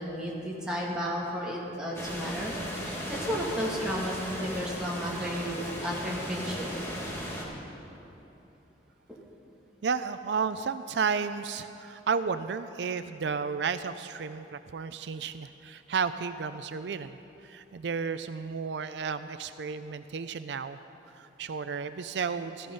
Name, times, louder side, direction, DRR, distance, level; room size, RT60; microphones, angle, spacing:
voice 1, 0.0-2.5 2.8-6.7 9.1-9.2, equal, 5° right, -5 dB, 2.3 m, -33 dB
sound 1, 1.9-7.4, equal, 15° left, 2.0 m, -36 dB
voice 2, 9.8-17.2 17.4-20.8 21.2-22.7, right 5 dB, 75° right, 11 dB, 0.4 m, -32 dB
15.0 x 14.5 x 5.5 m, 3.0 s
head